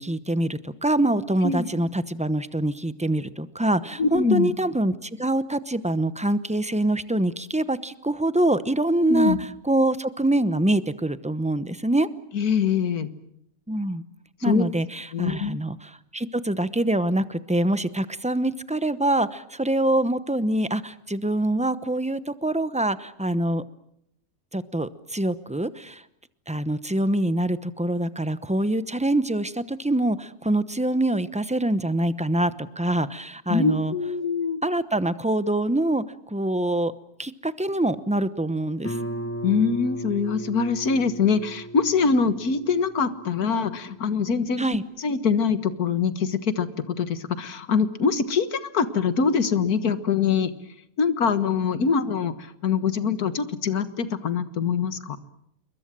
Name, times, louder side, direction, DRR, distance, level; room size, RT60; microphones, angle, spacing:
voice 1, 0.0-12.1 13.7-14.0 14.4-23.6 24.5-26.0 26.5-33.9 34.6-36.9 37.2-39.0 44.6-44.8, right 1 dB, 5° right, 13 dB, 0.6 m, -25 dB
voice 2, 4.0-4.5 9.1-9.4 12.3-13.1 14.5-14.7 15.1-15.6 33.5-34.6 39.4-44.6 45.0-46.7 47.0-50.5 51.0-55.2, left 5 dB, 80° left, 12 dB, 2.0 m, -24 dB
Guitar, 38.8-44.3, right 1 dB, 10° left, 1.1 m, -36 dB
28.5 x 22.5 x 7.6 m, 0.73 s
omnidirectional pair, 1.6 m